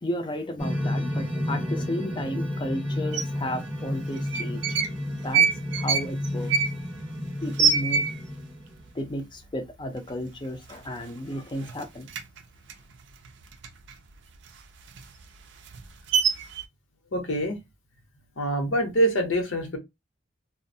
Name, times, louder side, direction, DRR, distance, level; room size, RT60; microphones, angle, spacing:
voice 1, 0.0-4.8 5.2-5.5 5.8-6.5 7.4-8.1 8.9-12.1, left 1 dB, 25° left, 0.4 m, -33 dB
sound 1, 0.6-9.0, left 1 dB, 10° right, 0.7 m, -31 dB
sound 2, 3.1-3.2 4.2-5.0 5.3-8.5 8.8-8.9 9.2-9.7 10.1-10.2 10.5-11.3 11.6-14.0 14.3-16.6, right 6 dB, 65° right, 0.4 m, -26 dB
voice 2, 17.1-17.6 18.3-19.8, right 1 dB, 80° left, 0.9 m, -25 dB
2.4 x 2.1 x 2.7 m
head